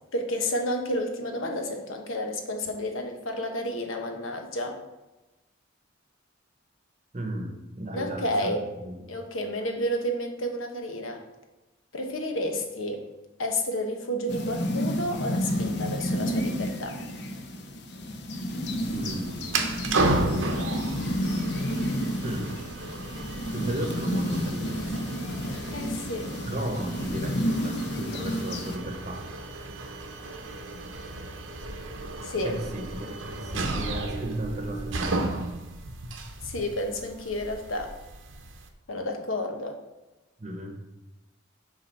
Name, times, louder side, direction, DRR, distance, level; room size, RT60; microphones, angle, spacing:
voice 1, 0.1-4.8 7.9-8.6 9.1-11.2 11.9-13.0 13.4-17.0 25.7-26.3 32.2-32.6 36.4-37.9 38.9-39.8, left 1 dB, 85° left, 4 dB, 1.1 m, -31 dB
voice 2, 7.1-8.6 8.8-8.9 18.9-19.8 22.2-22.5 23.5-24.8 26.5-29.2 32.4-35.4 40.4-40.8, right 1 dB, 35° right, 3 dB, 0.9 m, -35 dB
sound 1, 14.3-28.8, equal, 55° left, 0.8 m, -31 dB
sound 2, 18.8-38.7, right 2 dB, 75° right, 0.8 m, -34 dB
7.2 x 4.0 x 5.4 m, 1.0 s
head